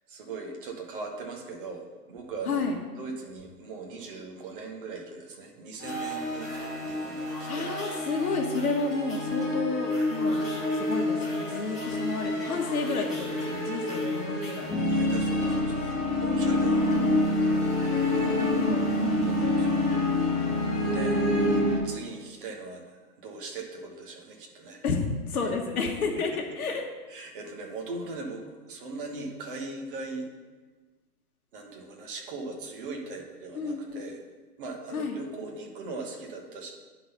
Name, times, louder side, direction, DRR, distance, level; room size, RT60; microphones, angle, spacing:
voice 1, 0.1-2.6 3.0-6.5 6.8-7.7 14.9-18.5 19.2-19.8 20.7-21.6 21.8-24.8 26.0-26.1 27.1-30.3 31.5-34.2 34.6-36.7, right 3 dB, 35° right, 1 dB, 1.2 m, -40 dB
voice 2, 2.5-2.8 7.5-10.4 10.7-14.8 15.0-15.5 16.6-17.4 18.1-19.3 24.8-26.8 33.6-34.0 34.9-35.2, left 4 dB, 65° left, 1 dB, 1.2 m, -31 dB
sound 1, 5.8-21.8, left 1 dB, ahead, 1.2 m, -27 dB
9.8 x 4.0 x 5.5 m, 1.3 s
hypercardioid pair, 160°, 48 cm